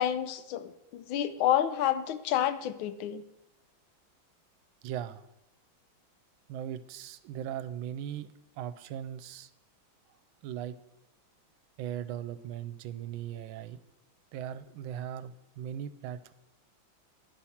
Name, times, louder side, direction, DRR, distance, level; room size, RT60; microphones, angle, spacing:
voice 1, 0.0-3.2, left 11 dB, 80° left, 12 dB, 1.4 m, -29 dB
voice 2, 4.8-5.3 6.5-8.3 8.6-9.5 10.4-10.8 11.8-13.8 14.3-16.3, right 10 dB, 80° right, 13 dB, 1.3 m, -38 dB
9.8 x 4.4 x 7.0 m, 0.90 s
omnidirectional pair, 2.2 m